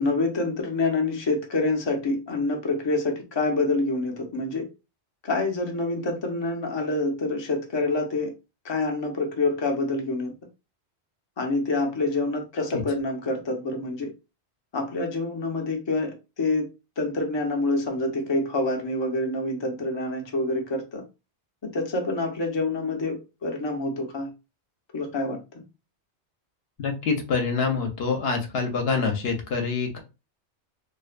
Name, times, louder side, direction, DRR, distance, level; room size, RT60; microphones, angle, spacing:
voice 1, 0.0-4.6 5.2-8.3 8.6-10.3 11.4-14.1 14.7-16.7 17.0-21.0 21.6-23.2 23.4-24.3 24.9-25.4, left 2 dB, 35° left, 0.4 m, -27 dB
voice 2, 26.8-30.0, left 4 dB, 65° left, 0.8 m, -26 dB
2.5 x 2.1 x 2.4 m
omnidirectional pair, 1.2 m